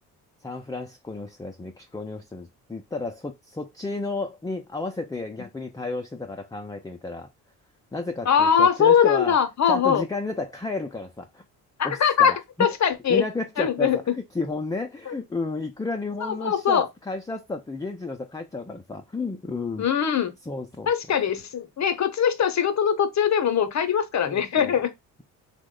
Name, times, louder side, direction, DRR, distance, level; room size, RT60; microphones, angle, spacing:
voice 1, 0.4-7.3 7.9-9.4 9.7-11.4 11.8-12.7 13.1-19.9 20.4-20.9 24.3-24.8, left 3 dB, 10° left, 0.4 m, -32 dB
voice 2, 8.3-10.0 11.8-12.3 12.6-13.2 13.6-14.0 15.1-15.2 16.3-16.9 19.8-20.3 20.9-24.9, left 7 dB, 40° left, 0.7 m, -21 dB
2.9 x 2.1 x 3.6 m
supercardioid pair, 65°, 43 cm